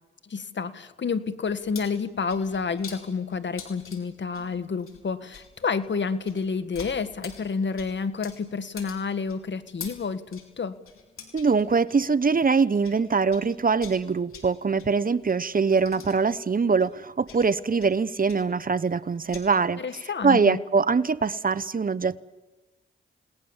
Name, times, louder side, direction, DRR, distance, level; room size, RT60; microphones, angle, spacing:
voice 1, 0.2-10.8 19.8-20.6, left 5 dB, 60° left, 12 dB, 1.8 m, -29 dB
sound 1, 1.5-13.0 13.3-19.4, left 6 dB, 85° left, 4.4 m, -46 dB
voice 2, 11.3-19.8 20.2-22.2, right 5 dB, 40° right, 16 dB, 1.0 m, -23 dB
29.5 x 19.0 x 7.3 m, 1.2 s
cardioid pair, 55°, 21 cm